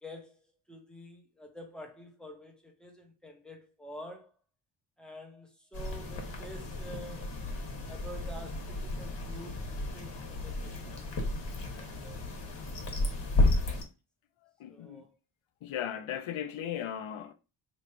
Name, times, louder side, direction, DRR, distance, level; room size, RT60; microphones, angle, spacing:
voice 1, 0.0-4.3 5.0-7.3 7.9-9.6 9.9-11.2 11.7-12.3 13.4-13.8 14.7-15.2, equal, ahead, 1.0 m, -48 dB
sound 1, 5.7-13.8, left 2 dB, 55° left, 1.2 m, -33 dB
voice 2, 14.6-15.0 15.6-17.3, left 10 dB, 75° left, 0.6 m, -37 dB
3.1 x 2.6 x 4.4 m
wide cardioid pair, 110°, 49 cm